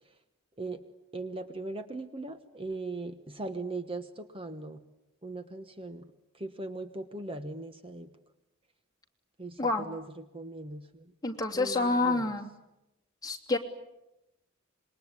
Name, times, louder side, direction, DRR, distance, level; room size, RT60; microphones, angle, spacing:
voice 1, 1.1-4.8 5.2-6.1 6.3-8.1 9.4-11.1 11.5-12.3, right 2 dB, 25° right, 9 dB, 1.3 m, -39 dB
voice 2, 11.2-12.5 13.2-13.6, left 3 dB, 20° left, 1 dB, 2.9 m, -28 dB
27.0 x 22.0 x 9.6 m, 0.91 s
head